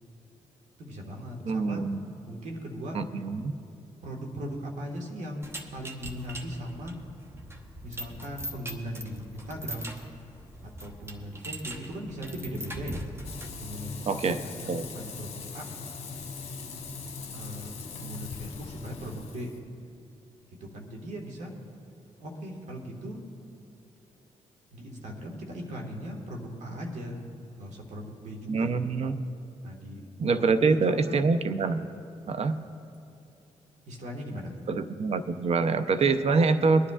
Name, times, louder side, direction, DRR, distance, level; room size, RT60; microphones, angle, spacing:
voice 1, 0.8-1.9 2.3-3.0 4.0-7.0 7.8-9.9 10.6-13.0 13.6-15.7 17.3-19.5 20.6-21.5 22.2-23.2 24.7-27.2 27.6-28.7 29.6-30.0 30.3-30.8 31.0-31.2 33.9-34.5, equal, 75° right, 0 dB, 1.7 m, -39 dB
voice 2, 1.5-2.1 2.9-3.5 14.1-14.9 28.5-29.2 30.2-31.8 32.3-32.6 34.7-36.9, right 4 dB, 55° right, 10 dB, 0.6 m, -25 dB
sound 1, 5.4-13.7, right 1 dB, 20° right, 1.0 m, -41 dB
Frying (food), 13.2-19.6, left 4 dB, 55° left, 1.1 m, -40 dB
23.0 x 10.0 x 2.4 m, 2.6 s
cardioid pair, 65°, 13 cm